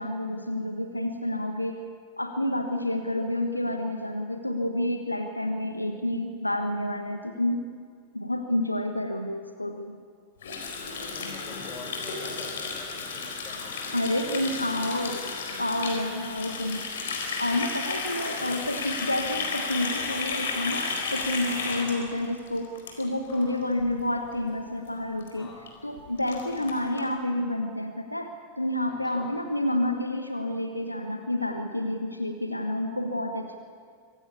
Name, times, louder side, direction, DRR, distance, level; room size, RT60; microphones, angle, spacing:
voice 1, 0.0-1.8 2.2-7.7 8.1-10.0 13.9-15.3 15.6-16.8 17.4-22.7 23.0-25.5 25.8-33.6, left 1 dB, 85° left, 6 dB, 1.4 m, -29 dB
Water tap faucet, 10.4-23.4 23.7-23.9 24.3-24.6 24.9-25.0 25.2-25.3 25.7-25.8 26.0-27.0, left 4 dB, 60° left, 4.3 m, -33 dB
voice 2, 10.9-14.4 17.9-18.7 21.5-22.1 23.3-23.6 25.3-25.7 26.3-26.5 28.9-29.4, left 3 dB, 25° left, 1 dB, 6.4 m, -47 dB
25.0 x 17.0 x 8.4 m, 2.1 s
figure-of-eight pair, 90°, 0 cm